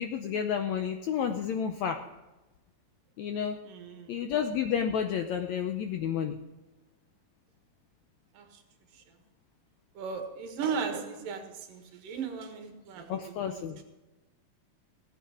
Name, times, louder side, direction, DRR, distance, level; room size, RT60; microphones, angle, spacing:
voice 1, 0.0-2.0 3.2-3.6 4.1-6.4 13.1-13.8, left 8 dB, 90° left, 6 dB, 1.6 m, -31 dB
voice 2, 3.6-4.2 8.3-8.5 10.0-13.8, right 6 dB, 70° right, 4 dB, 3.3 m, -37 dB
17.5 x 9.3 x 5.0 m, 1.1 s
omnidirectional pair, 4.1 m